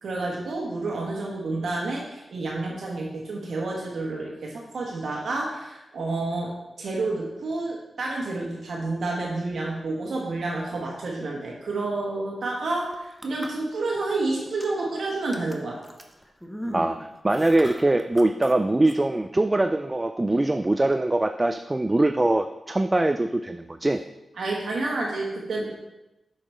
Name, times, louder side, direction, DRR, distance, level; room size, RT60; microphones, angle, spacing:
voice 1, 0.0-6.5 6.8-15.8 24.4-25.7, right 2 dB, 75° right, -2 dB, 1.2 m, -29 dB
sound 1, 12.8-14.1 14.5-14.9 15.3-18.5 18.8-18.9, equal, 5° left, 1.0 m, -39 dB
voice 2, 17.2-24.0, right 2 dB, 25° right, 8 dB, 0.3 m, -22 dB
6.9 x 4.9 x 4.3 m, 0.97 s
cardioid pair, 55°, 0 cm